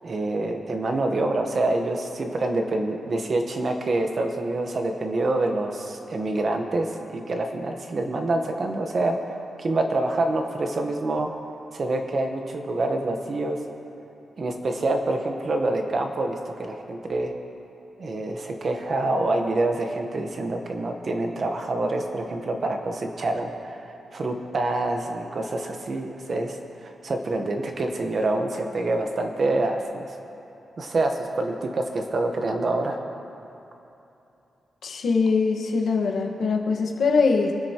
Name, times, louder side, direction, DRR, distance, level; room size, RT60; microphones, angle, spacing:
voice 1, 0.0-11.3 11.7-13.6 14.4-17.3 18.0-30.2 30.8-33.0, right 2 dB, 40° right, 4 dB, 1.1 m, -26 dB
voice 2, 34.8-37.5, left 4 dB, 70° left, 1 dB, 1.4 m, -22 dB
26.5 x 9.8 x 3.0 m, 2.9 s
wide cardioid pair, 140°, 0 cm